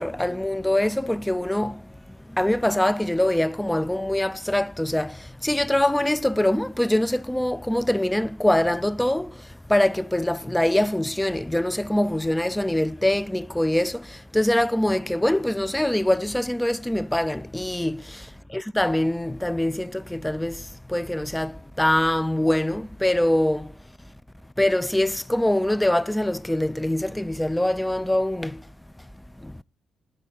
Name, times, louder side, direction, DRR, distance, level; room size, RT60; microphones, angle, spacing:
voice 1, 0.0-23.8 24.6-28.7 29.4-29.6, left 1 dB, 10° left, 0.3 m, -24 dB
9.5 x 4.8 x 7.0 m
supercardioid pair, 55°, 0 cm